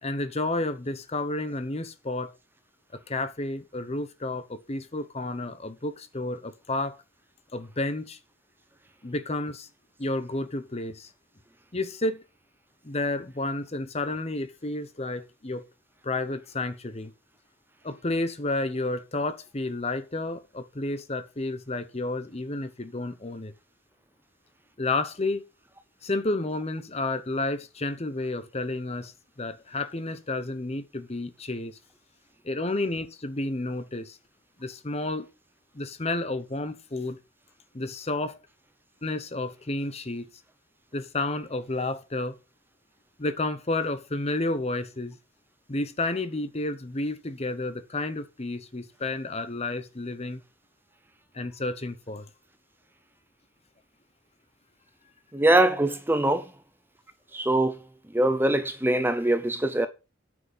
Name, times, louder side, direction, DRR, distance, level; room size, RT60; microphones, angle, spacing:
voice 1, 0.0-2.3 3.1-7.0 7.5-8.2 9.0-9.7 10.0-11.1 11.7-12.2 12.8-15.7 16.0-17.1 17.8-23.5 24.8-25.4 26.0-29.1 29.4-31.8 32.4-34.2 34.6-35.2 35.7-37.2 37.7-38.4 39.0-40.3 40.9-42.4 43.2-45.2 45.7-50.4 51.3-52.3, left 2 dB, 30° left, 0.9 m, -31 dB
voice 2, 55.3-56.5 57.3-57.7 58.1-59.9, right 1 dB, 10° right, 0.6 m, -22 dB
9.1 x 6.1 x 5.6 m
head